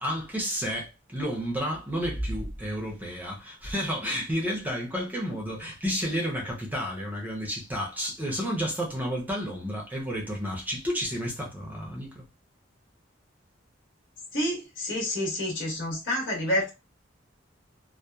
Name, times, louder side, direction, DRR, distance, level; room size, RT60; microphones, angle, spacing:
voice 1, 0.0-12.2, equal, 10° right, 0.6 m, -31 dB
voice 2, 14.3-16.7, left 1 dB, 70° left, 1.2 m, -28 dB
2.8 x 2.1 x 2.2 m
head